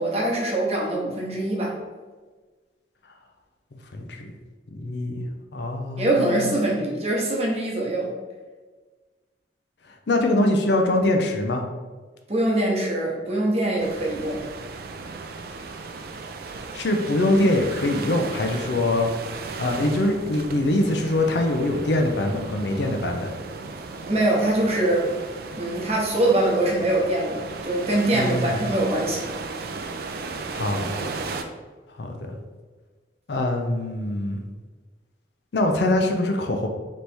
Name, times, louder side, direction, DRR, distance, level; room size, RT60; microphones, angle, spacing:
voice 1, 0.0-1.7 6.0-8.1 12.3-14.4 24.0-25.1 25.6-29.3, right 1 dB, 35° right, -3 dB, 0.9 m, -23 dB
voice 2, 3.7-4.3 4.7-5.2 5.5-6.6 10.1-11.6 16.7-19.1 19.6-23.4 28.1-28.6 30.5-31.1 32.0-32.4 33.3-34.4 35.5-36.7, left 1 dB, 70° left, 3 dB, 0.5 m, -23 dB
sound 1, 13.8-31.4, right 4 dB, 55° right, 0.4 m, -35 dB
3.3 x 3.0 x 4.2 m, 1.3 s
head